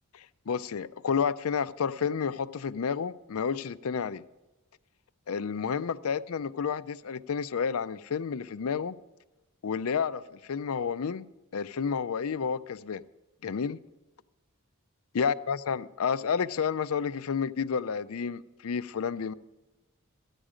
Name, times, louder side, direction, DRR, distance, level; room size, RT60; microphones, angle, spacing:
voice 1, 0.1-4.2 5.3-9.0 9.6-11.3 11.5-13.0 13.4-13.8 15.1-19.3, left 6 dB, 75° left, 0.5 m, -30 dB
13.5 x 10.0 x 5.0 m
head